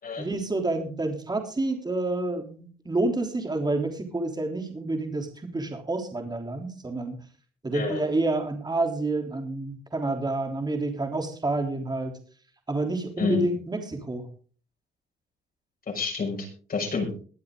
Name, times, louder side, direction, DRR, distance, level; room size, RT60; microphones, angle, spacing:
voice 1, 0.2-7.2 7.6-12.1 12.7-14.3, right 2 dB, 20° right, 4 dB, 3.5 m, -28 dB
voice 2, 15.9-17.1, left 5 dB, 45° left, 0 dB, 6.2 m, -29 dB
22.5 x 7.6 x 3.9 m, 0.40 s
cardioid pair, 90°, 20 cm